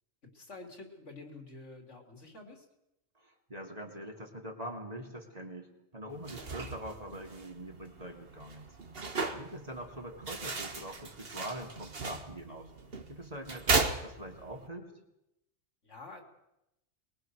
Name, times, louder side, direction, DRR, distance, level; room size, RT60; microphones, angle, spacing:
voice 1, 0.3-2.6 15.8-16.2, left 3 dB, 75° left, 3 dB, 3.9 m, -48 dB
voice 2, 3.2-8.7 9.0-12.7 13.1-14.9, right 1 dB, 30° right, 1 dB, 3.1 m, -44 dB
sound 1, 6.1-14.7, right 4 dB, 55° right, 1.8 m, -36 dB
23.0 x 21.5 x 6.4 m, 0.86 s
omnidirectional pair, 1.2 m